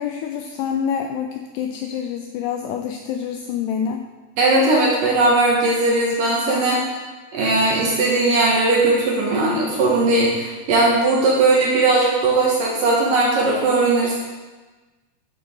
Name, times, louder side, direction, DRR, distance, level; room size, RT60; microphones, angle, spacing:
voice 1, 0.0-4.0, left 8 dB, 85° left, 4 dB, 2.4 m, -27 dB
voice 2, 4.4-6.8 7.3-14.2, right 2 dB, 65° right, -3 dB, 2.4 m, -18 dB
11.0 x 9.5 x 3.7 m, 1.3 s
omnidirectional pair, 5.3 m